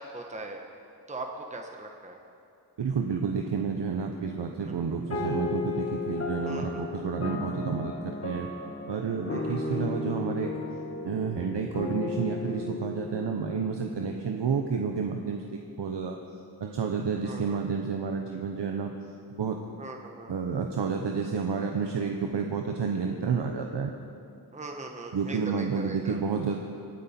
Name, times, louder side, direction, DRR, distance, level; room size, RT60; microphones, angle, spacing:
voice 1, 0.1-0.6 1.1-2.2 4.6-4.7 6.5-7.0 9.3-9.8 17.2-17.6 19.8-20.3 24.5-26.2, right 2 dB, 15° right, 2 dB, 1.0 m, -40 dB
voice 2, 2.8-8.5 8.9-10.5 11.0-16.2 16.6-18.9 19.3-19.6 20.3-23.9 25.1-26.6, right 5 dB, 90° right, 3 dB, 0.8 m, -30 dB
sound 1, 5.1-14.8, left 3 dB, 35° left, 1.7 m, -35 dB
24.5 x 9.1 x 4.3 m, 2.6 s
wide cardioid pair, 85°, 41 cm